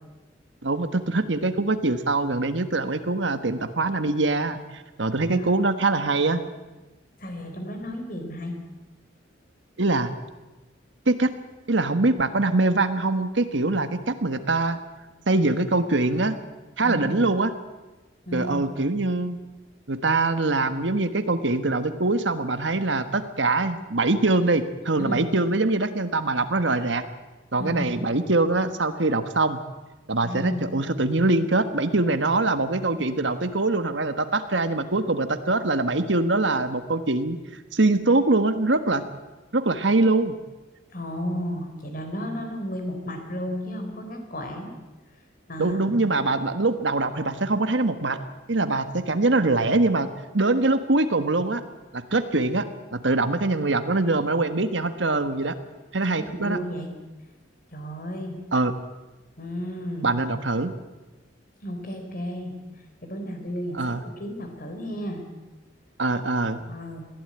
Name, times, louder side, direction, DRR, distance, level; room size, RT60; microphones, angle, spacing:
voice 1, 0.6-6.4 9.8-10.1 11.1-11.3 11.7-14.8 15.3-16.4 16.8-17.5 18.3-19.4 19.9-27.0 27.5-29.6 30.1-37.4 37.7-39.1 39.5-40.4 45.6-48.2 48.5-51.6 51.9-52.6 52.9-55.6 55.9-56.6 58.5-58.7 60.0-60.7 63.7-64.0 66.0-66.6, right 2 dB, 75° right, 9 dB, 1.5 m, -23 dB
voice 2, 7.2-8.6 16.8-17.3 18.3-18.7 25.0-25.2 27.6-27.9 30.2-30.8 40.9-44.7 45.5-46.0 56.0-56.9 57.7-58.3 59.4-60.2 61.6-62.5 63.0-63.8 64.2-65.2 66.6-67.0, equal, 50° left, 4 dB, 4.3 m, -33 dB
21.5 x 15.0 x 8.9 m, 1.1 s
head